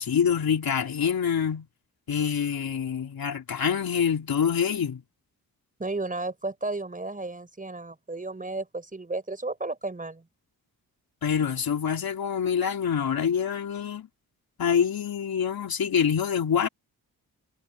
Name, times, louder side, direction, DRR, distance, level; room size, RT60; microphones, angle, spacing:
voice 1, 0.0-1.7 2.1-5.0 11.2-14.1 14.6-16.7, left 7 dB, 70° left, 3.8 m, -26 dB
voice 2, 5.8-10.3, right 2 dB, 20° right, 5.4 m, -33 dB
wide cardioid pair, 110°, 37 cm